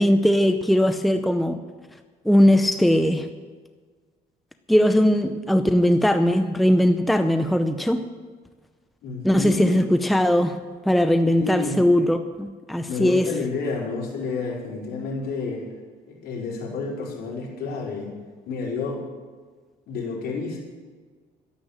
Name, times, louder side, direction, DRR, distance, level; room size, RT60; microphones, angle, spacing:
voice 1, 0.0-1.6 2.2-3.3 4.7-8.0 9.2-10.6 10.8-13.3, equal, ahead, 8 dB, 0.7 m, -19 dB
voice 2, 9.0-9.7 11.4-11.8 12.9-15.7 16.1-18.1 18.5-19.0 19.9-20.6, left 4 dB, 70° left, -3 dB, 5.0 m, -30 dB
12.0 x 11.5 x 7.4 m, 1.5 s
cardioid pair, 110°, 17 cm